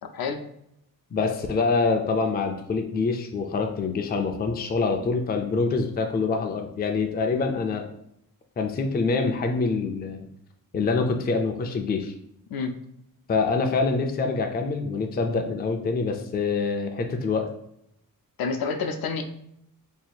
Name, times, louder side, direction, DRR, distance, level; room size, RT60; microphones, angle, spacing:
voice 1, 0.0-0.5 12.5-12.8 18.4-19.2, left 5 dB, 75° left, 6 dB, 0.5 m, -29 dB
voice 2, 1.1-7.9 8.6-10.3 10.7-12.1 13.3-17.5, left 4 dB, 25° left, 4 dB, 0.4 m, -25 dB
2.8 x 2.3 x 4.2 m, 0.77 s
wide cardioid pair, 135°, 36 cm